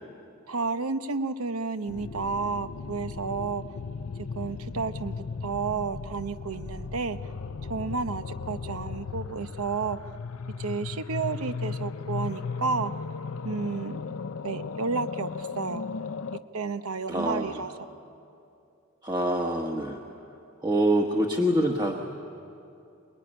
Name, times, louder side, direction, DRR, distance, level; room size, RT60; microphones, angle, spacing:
voice 1, 0.5-3.6 4.4-5.1 5.4-7.2 7.6-10.1 10.6-12.9 13.4-14.0 14.4-15.8 16.5-17.7, right 4 dB, 85° right, 11 dB, 0.9 m, -31 dB
sound 1, 1.9-16.4, left 5 dB, 75° left, 0.6 m, -36 dB
voice 2, 17.1-17.6 19.0-20.0 20.6-22.0, right 1 dB, 20° right, 1 dB, 1.2 m, -25 dB
26.5 x 19.5 x 10.0 m, 2.6 s
head